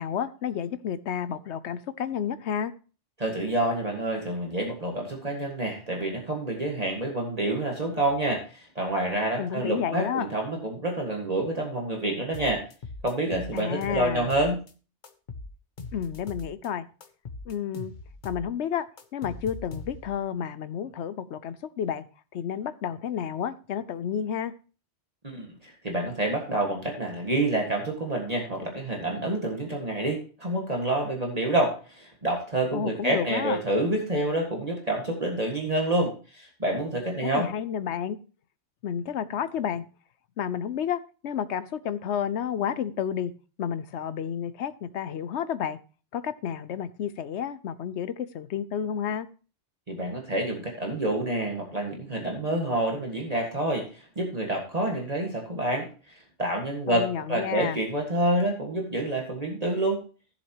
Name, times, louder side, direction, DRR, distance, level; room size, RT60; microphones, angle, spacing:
voice 1, 0.0-2.7 9.4-10.3 13.5-14.3 15.9-16.9 17.5-17.9 18.2-18.9 19.1-22.0 22.3-24.5 32.7-33.6 37.2-38.2 38.8-39.9 40.4-43.3 43.6-45.8 46.1-49.3 56.9-57.8, left 8 dB, 70° left, 0.9 m, -31 dB
voice 2, 3.2-12.6 13.0-14.6 25.2-37.5 49.9-55.9 56.4-60.0, right 1 dB, 35° right, 1.8 m, -28 dB
sound 1, 12.3-14.7 15.0-16.7 17.0-20.2, left 3 dB, 45° left, 1.0 m, -41 dB
15.0 x 7.2 x 2.9 m
omnidirectional pair, 1.2 m